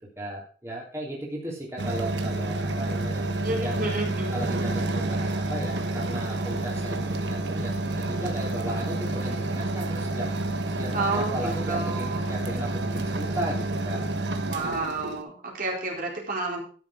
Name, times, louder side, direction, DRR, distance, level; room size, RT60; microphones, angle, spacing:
voice 1, 0.2-3.2 3.6-4.0 4.3-10.3 10.8-14.1, right 1 dB, 15° right, -4 dB, 3.1 m, -36 dB
sound 1, 1.8-15.2, right 2 dB, 70° right, 1.4 m, -29 dB
voice 2, 3.4-4.4 10.9-12.2 14.5-16.6, right 3 dB, 50° right, -2 dB, 4.1 m, -30 dB
13.0 x 7.3 x 4.9 m, 0.41 s
head